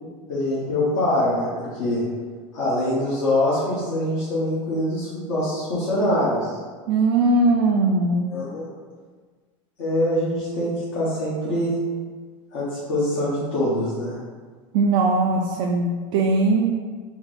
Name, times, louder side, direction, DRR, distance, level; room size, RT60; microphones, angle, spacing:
voice 1, 0.3-2.0 2.5-6.6 8.3-8.7 9.8-11.7 12.5-14.2, left 1 dB, 70° left, -9 dB, 1.2 m, -24 dB
voice 2, 6.9-8.2 14.7-16.7, right 3 dB, 60° right, 1 dB, 0.4 m, -20 dB
4.3 x 2.1 x 4.0 m, 1.5 s
hypercardioid pair, 95°, 17 cm